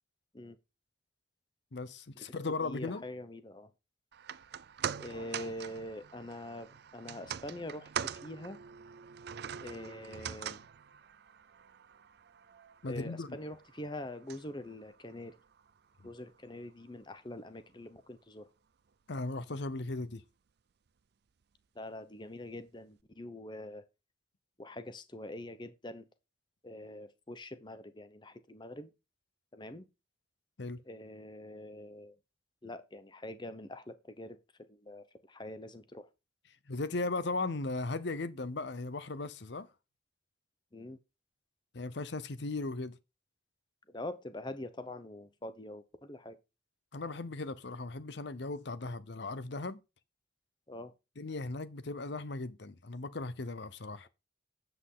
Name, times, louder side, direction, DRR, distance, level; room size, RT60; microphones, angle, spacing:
voice 1, 1.7-3.0 12.8-13.3 16.0-16.1 19.1-20.2 30.6-30.8 36.7-39.7 41.7-43.0 46.9-49.8 51.2-54.1, left 3 dB, 60° left, 0.7 m, -37 dB
voice 2, 2.6-3.7 5.0-8.6 9.6-10.7 12.9-15.4 16.0-18.5 21.7-23.8 24.6-26.1 26.6-28.9 29.5-29.9 30.8-32.2 32.6-34.4 34.7-36.1 40.7-41.0 43.9-46.4 50.7-50.9, left 1 dB, 20° left, 0.7 m, -44 dB
sound 1, 4.1-16.5 16.8-16.9, right 8 dB, 55° right, 0.4 m, -44 dB
8.2 x 8.0 x 3.7 m
head